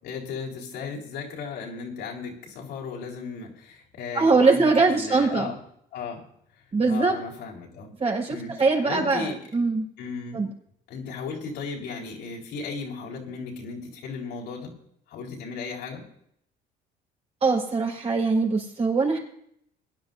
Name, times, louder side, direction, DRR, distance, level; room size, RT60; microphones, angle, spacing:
voice 1, 0.0-5.6 5.9-6.2 6.9-7.9 8.3-8.5 8.8-9.4 10.0-10.4 10.9-14.7 15.1-16.0, left 5 dB, 80° left, -2 dB, 4.3 m, -35 dB
voice 2, 4.1-5.5 6.7-7.2 8.0-9.8 10.3-10.5 17.4-19.2, right 4 dB, 40° right, -1 dB, 5.0 m, -22 dB
22.5 x 11.0 x 2.7 m, 0.70 s
cardioid pair, 110°, 17 cm